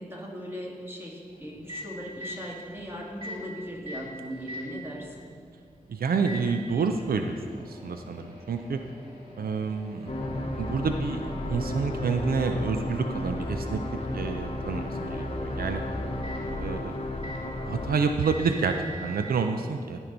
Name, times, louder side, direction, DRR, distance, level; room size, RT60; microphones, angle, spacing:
voice 1, 0.0-5.3, equal, 15° right, -3 dB, 1.9 m, -38 dB
Microwave oven, 1.3-19.3, equal, 35° right, 2.0 m, -45 dB
voice 2, 5.9-7.4 7.7-8.8 9.4-10.1 10.6-11.2 11.5-13.8 14.1-15.8 16.5-17.0 17.6-20.0, right 5 dB, 85° right, 6 dB, 0.4 m, -28 dB
sound 1, 10.1-18.0, left 1 dB, 40° left, 0.9 m, -33 dB
13.5 x 4.6 x 3.9 m, 2.1 s
wide cardioid pair, 60°, 15 cm